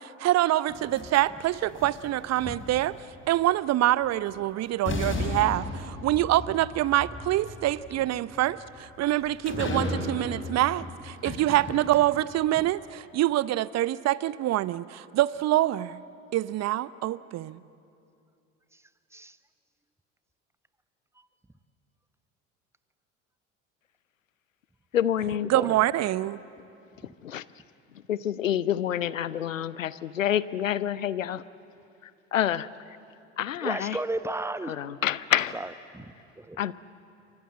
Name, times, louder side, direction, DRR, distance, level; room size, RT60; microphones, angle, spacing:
voice 1, 0.0-3.0 3.3-16.0 16.3-17.6 25.5-26.4, right 15 dB, 45° right, 19 dB, 0.8 m, -25 dB
sound 1, 0.7-3.1 4.3-4.4 4.8-12.3, left 2 dB, 30° left, 5.2 m, -35 dB
voice 2, 24.9-25.5 27.2-27.4 28.1-31.4 32.3-32.7 33.4-34.0 34.7-35.6 36.6-36.7, left 10 dB, 85° left, 19 dB, 0.7 m, -27 dB
voice 3, 25.4-25.8 27.0-27.1 33.6-34.8 35.5-36.6, right 2 dB, 5° right, 13 dB, 1.1 m, -34 dB
29.0 x 25.0 x 7.8 m, 2.6 s
figure-of-eight pair, 60°, 38 cm